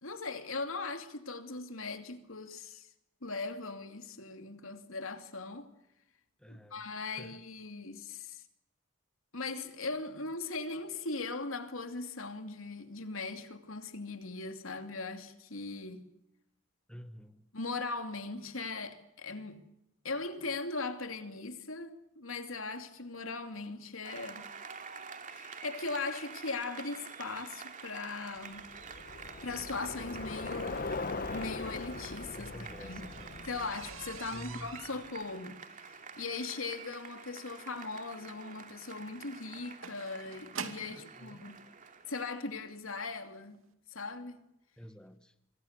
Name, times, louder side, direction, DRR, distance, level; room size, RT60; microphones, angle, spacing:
voice 1, 0.0-2.9 3.2-5.7 6.5-8.4 9.3-16.1 17.5-19.6 20.0-24.5 25.3-28.7 29.4-32.5 32.8-33.0 33.4-41.6 42.1-43.6 43.9-44.4, left 3 dB, 80° left, 2.7 m, -39 dB
voice 2, 6.4-7.4 16.9-17.5 32.3-33.3 34.3-34.9 40.9-41.5 44.8-45.3, equal, 5° left, 1.5 m, -49 dB
Applause, 24.0-42.3, right 5 dB, 40° right, 2.6 m, -48 dB
Bicycle, 28.5-35.0, left 3 dB, 45° left, 0.9 m, -41 dB
sound 1, 32.3-41.1 42.0-42.1 42.6-42.8 43.1-43.2 43.5-43.6, right 6 dB, 85° right, 2.5 m, -47 dB
26.0 x 25.5 x 6.7 m
head